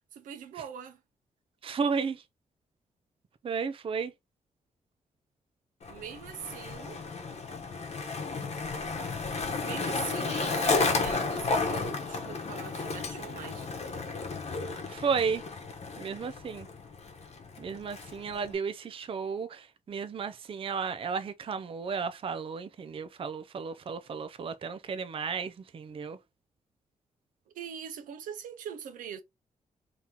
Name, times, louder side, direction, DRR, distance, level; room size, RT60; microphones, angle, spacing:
voice 1, 0.1-1.0 5.9-7.0 9.5-13.7 27.5-29.2, right 8 dB, 90° right, 0.7 m, -42 dB
voice 2, 1.6-2.2 3.4-4.1 14.9-15.4 16.0-16.7 17.6-26.2, right 5 dB, 45° right, 0.4 m, -33 dB
Skateboard, 5.8-18.5, left 4 dB, 55° left, 1.0 m, -33 dB
2.9 x 2.8 x 3.5 m
cardioid pair, 70°, 13 cm